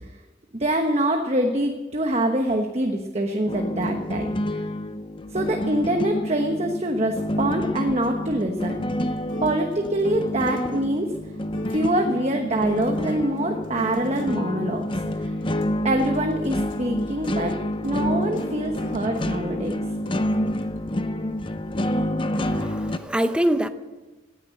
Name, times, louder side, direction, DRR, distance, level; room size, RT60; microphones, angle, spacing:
voice 1, 0.5-4.6 5.3-8.8 9.4-11.1 11.7-15.3 15.8-17.6 17.8-19.8, right 1 dB, 35° right, 4 dB, 1.1 m, -25 dB
sound 1, 3.5-23.0, left 1 dB, 25° left, 0.7 m, -28 dB
sound 2, 8.9-21.0, equal, 85° left, 2.5 m, -43 dB
voice 2, 22.3-23.7, right 1 dB, 5° right, 9 dB, 0.7 m, -24 dB
18.0 x 10.0 x 7.8 m, 1.2 s
head